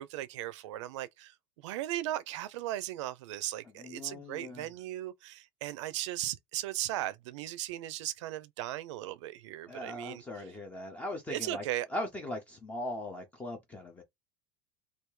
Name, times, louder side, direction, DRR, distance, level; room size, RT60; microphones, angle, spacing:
voice 1, 0.0-1.3 1.6-10.2 11.3-11.9, right 14 dB, 85° right, 0.5 m, -37 dB
voice 2, 3.8-4.6 9.7-11.6 11.9-14.0, left 1 dB, 10° left, 0.5 m, -39 dB
3.4 x 2.3 x 3.1 m
supercardioid pair, 175°, 15 cm